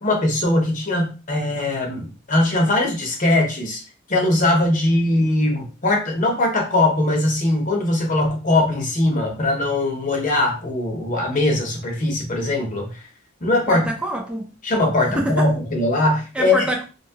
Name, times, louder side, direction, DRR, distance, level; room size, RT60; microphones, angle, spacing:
voice 1, 0.0-3.8 4.1-12.9 13.4-13.9 14.6-16.6, left 2 dB, 40° left, 1 dB, 0.8 m, -20 dB
voice 2, 13.7-14.5 15.2-15.5 16.3-16.9, right 1 dB, 5° right, 1 dB, 0.4 m, -25 dB
2.8 x 2.3 x 2.7 m, 0.32 s
head